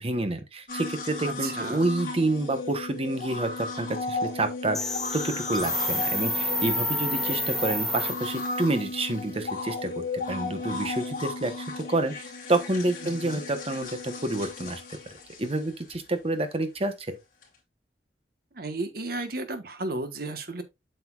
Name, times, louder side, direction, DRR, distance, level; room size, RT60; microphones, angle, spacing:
voice 1, 0.0-12.1 12.5-14.8 15.4-17.2, right 2 dB, 35° right, 1.1 m, -28 dB
sound 1, 0.7-16.0 17.4-17.5, left 3 dB, 50° left, 2.9 m, -35 dB
voice 2, 1.3-1.9 13.0-13.4 18.5-20.6, right 2 dB, 60° right, 1.3 m, -34 dB
sound 2, 4.7-8.6, left 1 dB, ahead, 1.3 m, -29 dB
8.1 x 6.8 x 2.4 m
head